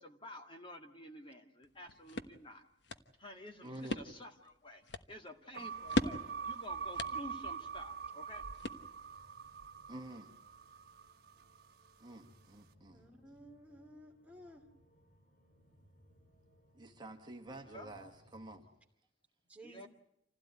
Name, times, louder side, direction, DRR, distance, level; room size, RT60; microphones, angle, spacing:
voice 1, 0.0-2.6 3.2-6.2 6.4-8.5 17.6-18.1 19.6-19.9, left 1 dB, 25° left, 4 dB, 2.1 m, -51 dB
sound 1, 1.6-9.2, left 1 dB, 65° left, 1.2 m, -41 dB
voice 2, 3.6-4.0 9.9-10.3 12.0-13.0 16.7-18.6, right 1 dB, 25° right, 3 dB, 1.9 m, -49 dB
sound 2, 5.5-11.9, right 6 dB, 55° right, 1.3 m, -44 dB
sound 3, 7.4-18.7, equal, 45° left, 7.0 m, -67 dB
voice 3, 12.9-14.7 19.5-19.9, equal, 5° right, 2 dB, 2.6 m, -55 dB
27.5 x 16.0 x 9.4 m, 0.77 s
head